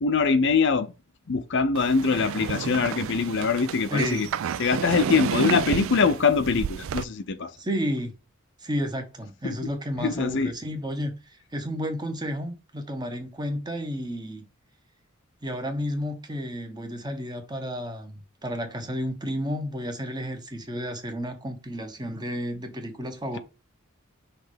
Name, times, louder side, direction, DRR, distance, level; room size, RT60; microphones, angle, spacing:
voice 1, 0.0-0.9 1.3-4.3 4.6-7.6 9.4-9.7 10.0-10.5, left 5 dB, 60° left, 0.6 m, -23 dB
sound 1, 1.7-7.0, right 7 dB, 70° right, 0.3 m, -31 dB
voice 2, 3.9-4.3 7.6-8.1 8.6-14.4 15.4-23.4, equal, 20° right, 1.0 m, -32 dB
5.8 x 3.2 x 5.1 m
head